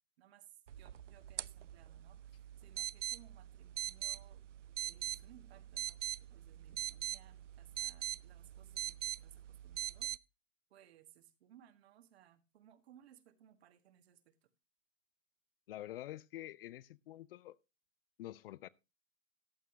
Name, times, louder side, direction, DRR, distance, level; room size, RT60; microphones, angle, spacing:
voice 1, 0.2-4.4 4.8-10.1 10.7-14.5, right 11 dB, 55° right, 1.8 m, -63 dB
sound 1, 0.7-10.2, right 11 dB, 75° right, 0.6 m, -43 dB
voice 2, 15.7-17.6 18.2-18.7, left 14 dB, 50° left, 0.6 m, -47 dB
14.5 x 11.0 x 2.9 m
figure-of-eight pair, 110°, 37 cm